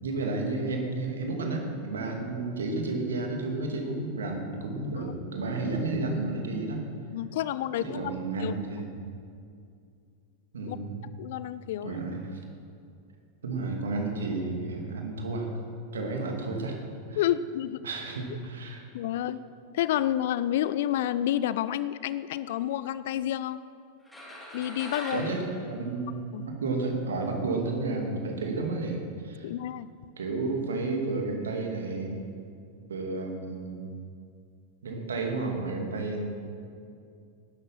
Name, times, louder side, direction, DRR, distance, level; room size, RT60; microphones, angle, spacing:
voice 1, 0.0-6.9 7.8-8.9 10.5-11.0 11.8-12.4 13.4-15.5 15.9-16.8 17.1-17.2 17.8-18.9 25.1-29.5 30.2-32.2 32.9-33.9 34.8-36.3, right 3 dB, 65° right, 2 dB, 2.6 m, -31 dB
voice 2, 7.1-8.0 8.4-8.5 10.7-10.8 11.2-12.0 17.2-17.8 18.9-19.4 19.7-23.6 24.5-25.3 26.3-26.5 29.4-29.9, left 12 dB, 55° left, 16 dB, 0.5 m, -29 dB
sound 1, 24.0-26.7, equal, 5° left, 4.1 m, -43 dB
18.0 x 12.0 x 5.8 m, 2.4 s
figure-of-eight pair, 90°, 0 cm